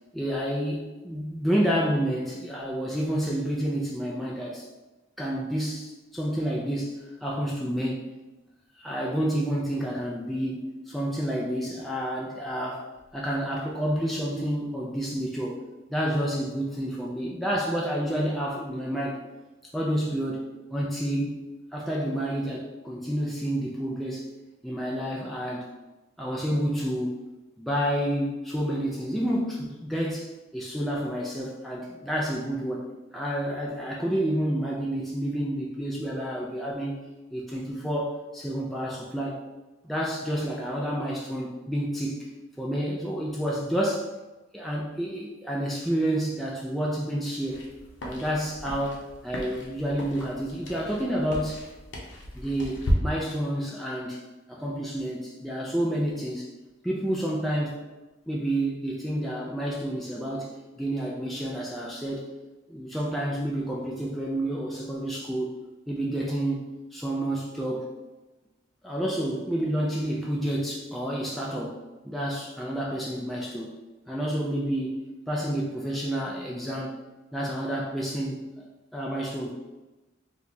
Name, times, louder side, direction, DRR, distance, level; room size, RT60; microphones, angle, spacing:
voice 1, 0.1-4.7 5.2-8.1 8.8-12.8 13.1-15.6 15.9-19.2 19.7-20.4 20.7-21.3 21.7-24.3 24.6-25.7 26.2-27.2 27.6-32.9 33.1-37.0 37.3-39.4 39.8-42.3 42.6-44.1 44.5-47.7 48.0-51.6 52.3-54.2 54.5-56.5 56.8-57.8 58.3-62.3 62.7-65.5 65.9-67.9 68.8-71.8 72.0-73.7 74.1-75.0 75.3-76.9 77.3-78.6 78.9-79.5, equal, ahead, -4 dB, 0.3 m, -29 dB
sound 1, 47.4-52.9, equal, 70° left, 0.7 m, -34 dB
2.8 x 2.3 x 4.0 m, 1.1 s
head